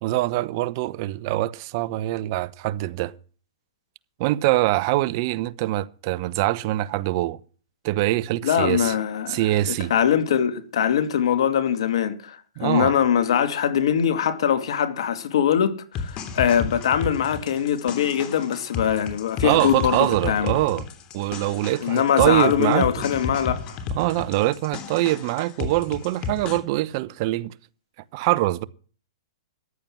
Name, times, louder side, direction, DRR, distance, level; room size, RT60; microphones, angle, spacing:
voice 1, 0.0-3.1 4.2-7.4 7.8-8.9 9.3-9.9 12.6-13.0 19.4-20.8 21.1-22.9 23.9-27.5 28.1-28.6, right 17 dB, 45° right, 0.8 m, -23 dB
voice 2, 8.4-9.4 9.7-20.5 21.8-23.8, left 9 dB, 70° left, 2.4 m, -22 dB
sound 1, 15.9-26.6, left 5 dB, 30° left, 3.1 m, -33 dB
14.5 x 10.5 x 6.1 m
hypercardioid pair, 135°, 3 cm